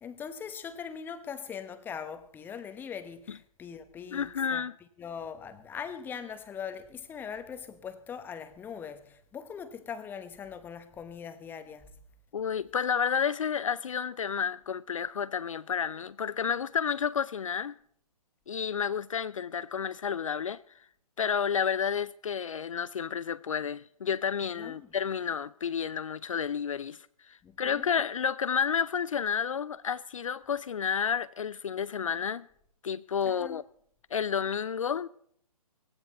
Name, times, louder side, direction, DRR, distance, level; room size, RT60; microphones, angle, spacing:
voice 1, 0.0-4.7 5.0-11.9 24.6-24.9 27.4-27.9 33.3-33.6, left 7 dB, 10° left, 1.1 m, -41 dB
voice 2, 4.1-4.8 12.3-17.8 18.5-20.6 21.2-32.5 32.8-33.6 34.1-35.1, left 7 dB, 60° left, 0.5 m, -31 dB
19.5 x 16.0 x 4.1 m
figure-of-eight pair, 125°, 19 cm